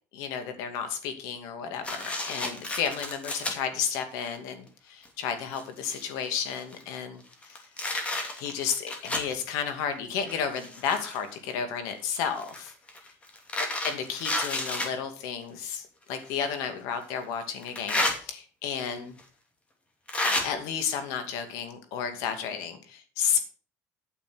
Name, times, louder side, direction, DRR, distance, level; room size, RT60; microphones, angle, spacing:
voice 1, 0.1-12.7 13.8-19.2 20.4-23.4, left 7 dB, 75° left, 7 dB, 2.4 m, -32 dB
sound 1, 1.8-3.5 4.2-4.4 5.0-5.1 5.4-6.8 7.3-9.3 10.2-11.4 12.4-14.9 16.2-16.3 17.6-18.1 19.2-19.3 20.1-20.4, left 2 dB, 20° left, 2.6 m, -31 dB
9.1 x 7.1 x 6.3 m, 0.39 s
cardioid pair, 140°, 6 cm